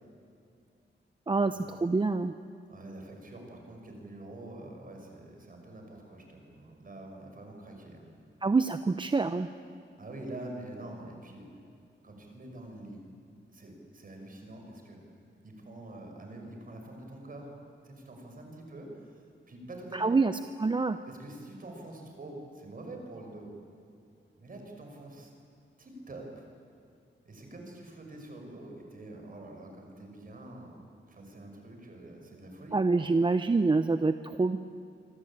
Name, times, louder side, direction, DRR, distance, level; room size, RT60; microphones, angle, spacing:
voice 1, 1.3-2.3 8.4-9.5 19.9-20.3 20.6-21.0 32.7-34.6, right 3 dB, 25° right, 10 dB, 0.6 m, -26 dB
voice 2, 2.7-8.1 10.0-11.5 12.0-13.1 13.5-15.0 15.4-17.5 17.8-19.1 19.5-20.1 21.1-23.5 24.4-25.3 25.8-26.5 27.2-30.8 31.1-33.1, right 1 dB, 45° right, 2 dB, 5.8 m, -46 dB
26.5 x 25.0 x 8.8 m, 2.5 s
wide cardioid pair, 175°, 20 cm